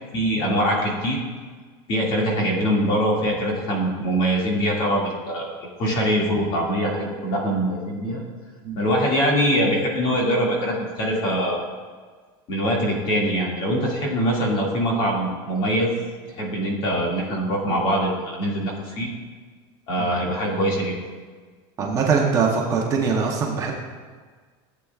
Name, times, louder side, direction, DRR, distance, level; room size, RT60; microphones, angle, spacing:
voice 1, 0.1-1.2 1.9-5.5 5.8-8.2 8.8-11.6 12.5-15.9 16.4-19.1 19.9-20.9, equal, 40° left, -2 dB, 2.2 m, -23 dB
voice 2, 21.8-23.7, right 5 dB, 25° right, -1 dB, 0.9 m, -22 dB
15.0 x 8.1 x 2.4 m, 1.5 s
cardioid pair, 170°, 13 cm